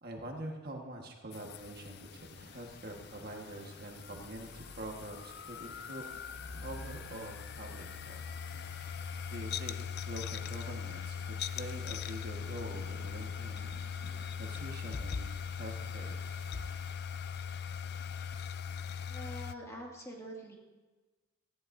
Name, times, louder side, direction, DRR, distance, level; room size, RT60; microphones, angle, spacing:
voice 1, 0.0-6.4 6.6-8.2 9.3-13.7 14.4-15.3 15.5-16.2, right 1 dB, 45° right, 1 dB, 1.5 m, -45 dB
sound 1, 1.3-19.5, left 7 dB, 50° left, 0.4 m, -41 dB
sound 2, 1.5-16.9, right 3 dB, 85° right, 1.2 m, -57 dB
voice 2, 19.0-20.6, right 1 dB, 15° left, -2 dB, 2.2 m, -45 dB
18.5 x 14.0 x 2.7 m, 1.2 s
head